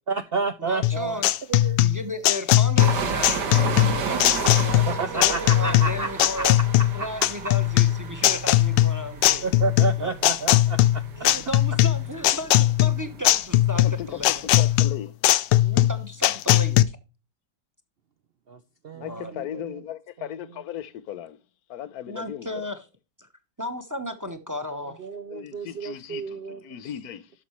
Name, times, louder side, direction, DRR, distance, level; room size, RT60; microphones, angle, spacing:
voice 1, 0.1-1.2 1.5-1.8 5.0-6.4 9.4-11.0 18.5-18.6 18.8-19.7 20.2-20.3 25.0-26.6, right 4 dB, 85° right, 0.5 m, -30 dB
voice 2, 0.6-1.3 1.8-6.6 6.9-9.5 10.0-10.1 11.2-14.6 15.6-17.0 18.9-19.5 22.1-22.8 23.2-23.3 23.6-25.1, left 1 dB, 15° right, 0.7 m, -35 dB
sound 1, 0.8-16.8, left 15 dB, 80° left, 1.3 m, -19 dB
sound 2, 2.8-14.8, right 5 dB, 65° right, 2.0 m, -33 dB
voice 3, 13.8-15.9 19.0-21.4 21.7-22.7 25.3-27.3, left 10 dB, 65° left, 1.2 m, -37 dB
12.0 x 5.7 x 3.1 m
omnidirectional pair, 2.0 m